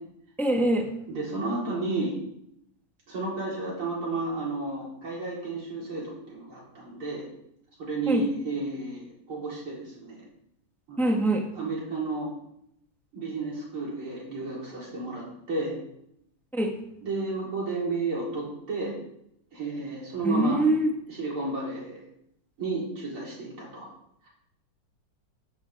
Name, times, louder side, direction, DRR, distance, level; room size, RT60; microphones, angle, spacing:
voice 1, 0.4-0.9 8.1-8.2 11.0-11.4 16.5-16.7 20.2-20.9, right 1 dB, ahead, 2 dB, 1.2 m, -23 dB
voice 2, 1.1-2.1 3.1-7.3 7.8-10.2 10.9-11.2 11.5-12.3 13.1-15.7 17.0-18.9 19.5-20.6 21.1-22.0 22.6-23.9, right 3 dB, 80° right, -5 dB, 5.0 m, -32 dB
13.5 x 10.5 x 3.6 m, 0.76 s
omnidirectional pair, 2.3 m